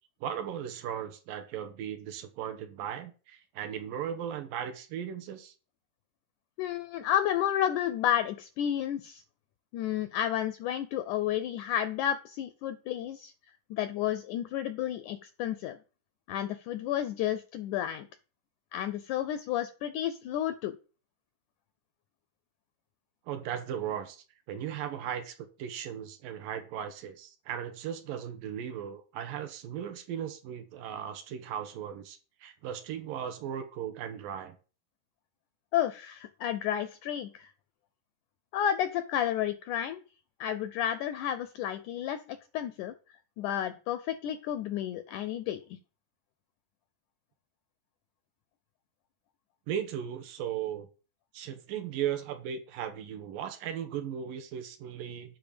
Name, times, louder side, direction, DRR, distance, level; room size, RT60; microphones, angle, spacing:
voice 1, 0.2-5.5 23.3-34.6 49.7-50.9 51.3-55.4, right 9 dB, 75° right, 8 dB, 2.5 m, -37 dB
voice 2, 6.6-9.2 9.7-13.3 13.7-15.8 16.3-18.1 18.7-20.7 35.7-37.5 38.5-40.0 40.4-42.2 42.5-42.9 43.4-45.6, left 11 dB, 80° left, 11 dB, 1.8 m, -31 dB
10.0 x 3.9 x 6.9 m, 0.35 s
omnidirectional pair, 4.2 m